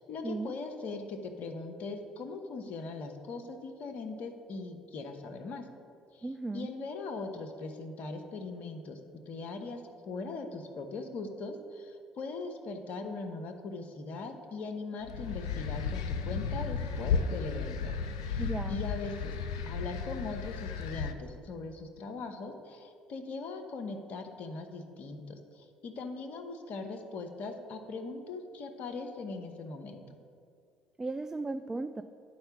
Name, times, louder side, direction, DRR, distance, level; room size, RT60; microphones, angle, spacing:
voice 1, 0.0-5.7 6.1-6.3 6.5-9.0 9.3-18.0 18.3-19.4 19.7-30.2, left 3 dB, 55° left, 6 dB, 0.9 m, -40 dB
voice 2, 6.2-6.7 18.4-18.8 31.0-32.0, right 3 dB, 20° right, 10 dB, 0.3 m, -35 dB
sound 1, 15.0-21.1, left 5 dB, 80° left, 0.4 m, -34 dB
10.5 x 4.5 x 5.9 m, 2.3 s
hypercardioid pair, 55°, 3 cm